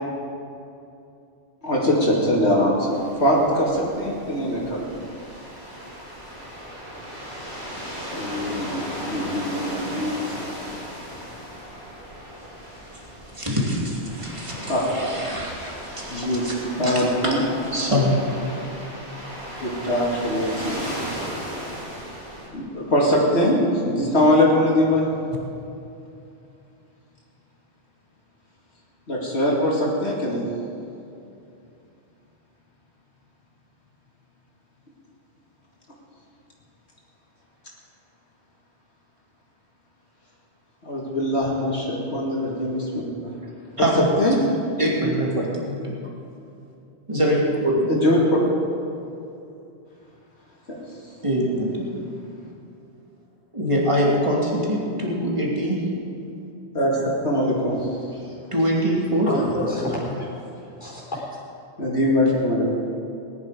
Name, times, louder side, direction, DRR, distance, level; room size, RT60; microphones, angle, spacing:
voice 1, 1.6-4.8 8.1-10.2 14.7-14.8 16.1-16.5 16.8-17.4 19.6-20.8 22.5-23.6 23.8-25.0 29.1-30.4 40.8-43.1 43.8-43.9 44.2-44.4 47.9-48.5 50.7-50.8 56.7-57.9 59.3-59.5 61.8-62.6, left 1 dB, 70° left, -4 dB, 2.5 m, -22 dB
sound 1, 2.9-22.5, equal, 70° right, 3.7 m, -36 dB
voice 2, 13.3-18.1 43.8-44.1 44.8-45.3 45.6-45.8 47.1-47.9 51.2-51.9 53.5-55.8 58.5-59.3, equal, 25° right, -3 dB, 2.7 m, -24 dB
voice 3, 59.2-61.3, left 1 dB, 45° left, -7 dB, 3.9 m, -30 dB
19.0 x 11.5 x 5.1 m, 2.7 s
omnidirectional pair, 1.1 m